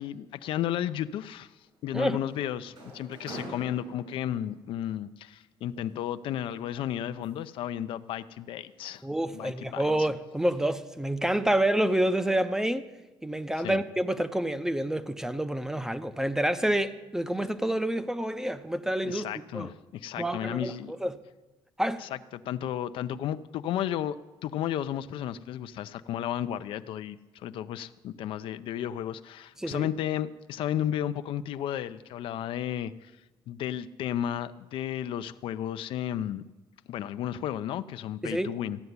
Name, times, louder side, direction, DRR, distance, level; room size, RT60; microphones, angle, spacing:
voice 1, 0.0-1.5 1.8-9.0 9.3-9.9 13.6-13.8 19.0-20.9 22.0-33.1 33.5-36.4 36.9-38.8, left 11 dB, 75° left, 0.5 m, -33 dB
sound 1, 1.6-4.6 5.7-7.6 8.0-8.3 8.7-9.0, right 1 dB, 75° right, 6.2 m, -46 dB
voice 2, 9.0-12.9 13.2-19.3 19.5-19.7 20.2-21.2 21.8-22.1 29.6-29.9 38.2-38.5, right 1 dB, 5° right, 0.6 m, -28 dB
14.5 x 6.8 x 9.5 m
cardioid pair, 125°, 9 cm